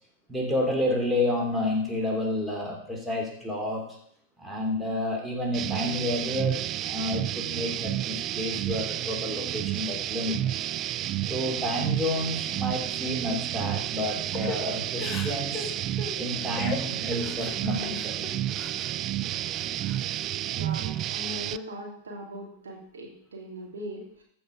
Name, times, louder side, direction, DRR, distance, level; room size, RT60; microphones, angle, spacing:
voice 1, 0.3-3.8 4.4-10.7 11.3-15.7 16.2-18.2, left 1 dB, 10° right, -2 dB, 3.1 m, -30 dB
sound 1, 5.5-21.6, right 13 dB, 40° right, 0.3 m, -31 dB
Crying sobbing / Breathing, 14.3-18.9 19.3-20.3 20.7-21.4, left 4 dB, 20° left, 1.4 m, -39 dB
voice 2, 20.5-24.2, equal, 75° right, -1 dB, 2.7 m, -40 dB
14.0 x 5.1 x 5.0 m, 0.68 s
hypercardioid pair, 95°, 0 cm